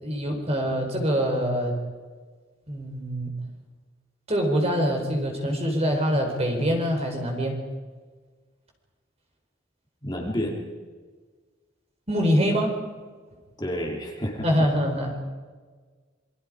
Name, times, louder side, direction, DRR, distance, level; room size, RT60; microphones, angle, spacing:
voice 1, 0.0-1.8 2.7-3.3 4.3-7.6 12.1-12.8 14.4-15.2, equal, 30° right, 2 dB, 4.3 m, -24 dB
voice 2, 10.0-10.6 13.6-14.5, equal, 20° left, -1 dB, 3.3 m, -29 dB
28.0 x 23.0 x 5.0 m, 1.5 s
head